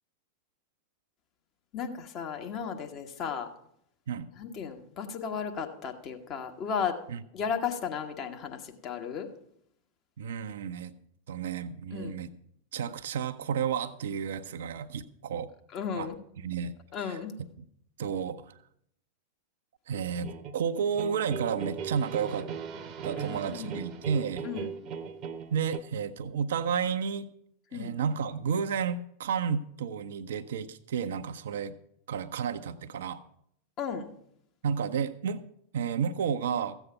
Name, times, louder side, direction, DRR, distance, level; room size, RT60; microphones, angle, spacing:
voice 1, 1.7-3.5 4.4-7.0 7.3-9.3 11.9-12.2 15.7-16.2 16.9-17.4 23.3-23.8 24.4-24.7 27.7-27.9 33.8-34.1, left 7 dB, 35° left, 4 dB, 1.4 m, -34 dB
voice 2, 10.2-10.9 11.3-12.3 12.7-15.5 15.9-16.1 16.4-16.7 17.0-17.5 18.0-18.5 19.9-22.5 23.0-24.5 25.5-27.3 27.7-31.7 32.1-33.2 34.6-35.4 35.7-36.7, right 7 dB, 60° right, 10 dB, 0.6 m, -31 dB
sound 1, 19.9-25.8, right 6 dB, 35° right, 0.9 m, -39 dB
14.5 x 8.0 x 5.7 m, 0.71 s
figure-of-eight pair, 90°, 0 cm